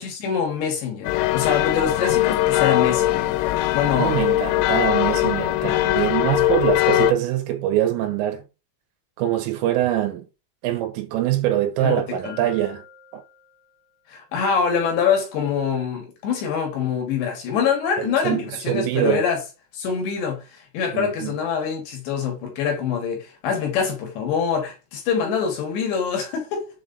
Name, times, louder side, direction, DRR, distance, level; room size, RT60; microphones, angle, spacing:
voice 1, 0.0-3.4 3.7-4.2 5.6-5.9 11.8-12.4 14.1-19.4 19.7-26.7, left 6 dB, 70° left, 3.2 m, -25 dB
sound 1, 1.0-7.1, left 16 dB, 85° left, 3.3 m, -21 dB
voice 2, 4.0-8.4 9.2-10.3 10.6-12.8 13.1-13.2 18.0-18.4 18.7-19.2 20.9-21.3, right 13 dB, 80° right, 3.5 m, -23 dB
Bell, 12.2-13.8, left 2 dB, 55° right, 1.8 m, -42 dB
7.5 x 3.3 x 3.8 m
omnidirectional pair, 6.0 m